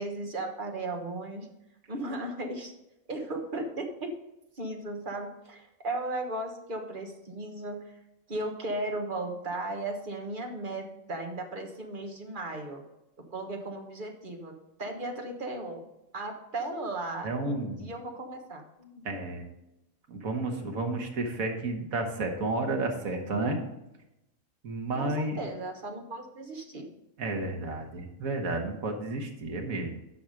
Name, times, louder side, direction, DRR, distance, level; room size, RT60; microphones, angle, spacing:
voice 1, 0.0-1.5 1.9-2.7 3.1-4.2 4.6-8.0 8.3-12.8 13.3-14.5 14.8-15.8 16.1-19.0 25.0-26.9, right 2 dB, 40° right, 3 dB, 1.4 m, -36 dB
voice 2, 17.2-17.9 19.1-19.5 20.1-23.6 24.6-25.4 27.2-29.9, right 2 dB, 85° right, 3 dB, 1.8 m, -31 dB
9.4 x 6.1 x 5.1 m, 0.89 s
omnidirectional pair, 1.4 m